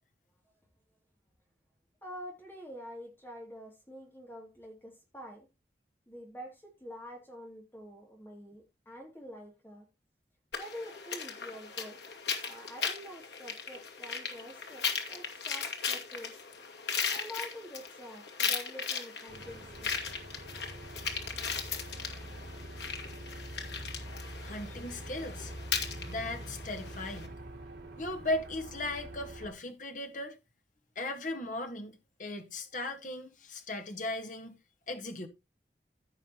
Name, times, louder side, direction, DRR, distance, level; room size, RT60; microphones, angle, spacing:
voice 1, 2.0-5.5 6.1-9.9 10.6-12.1 12.5-16.3 17.1-19.9, equal, 10° left, 2.8 m, -47 dB
sound 1, 10.5-27.3, left 6 dB, 85° left, 2.2 m, -37 dB
sound 2, 19.3-29.5, right 1 dB, 75° right, 2.7 m, -45 dB
voice 2, 24.4-25.5 26.1-27.3 28.0-30.4 31.0-34.6 34.9-35.3, left 2 dB, 45° left, 1.6 m, -37 dB
15.5 x 5.8 x 3.0 m
head